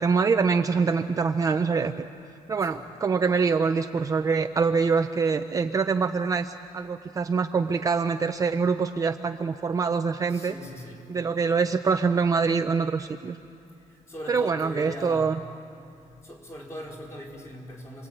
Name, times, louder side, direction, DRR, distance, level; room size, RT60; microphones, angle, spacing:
voice 1, 0.0-2.1 2.5-10.6 11.1-13.4 14.3-15.4, right 5 dB, 25° right, 7 dB, 0.6 m, -24 dB
voice 2, 10.3-11.1 13.9-15.4 16.2-18.1, left 1 dB, 20° left, -1 dB, 4.4 m, -40 dB
27.5 x 22.0 x 9.0 m, 2.8 s
cardioid pair, 175°, 14 cm